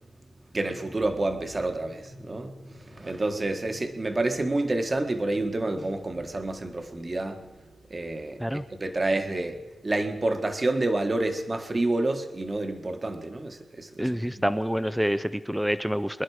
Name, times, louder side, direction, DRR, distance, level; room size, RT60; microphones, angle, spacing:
voice 1, 0.5-7.5 7.9-14.4, right 2 dB, 30° right, 1.4 m, -29 dB
voice 2, 14.0-16.2, equal, 5° right, 0.5 m, -27 dB
25.0 x 11.0 x 4.9 m
cardioid pair, 100°, 0 cm